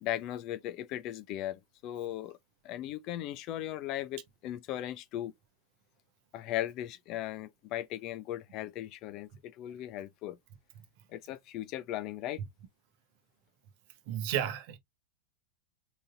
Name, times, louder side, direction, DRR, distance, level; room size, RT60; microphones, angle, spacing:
voice 1, 0.0-2.4 2.6-5.3 6.3-10.4 11.1-12.4, left 13 dB, 40° left, 0.5 m, -37 dB
voice 2, 14.1-14.8, right 10 dB, 50° right, 0.8 m, -32 dB
4.0 x 3.9 x 2.6 m
figure-of-eight pair, 90°, 0 cm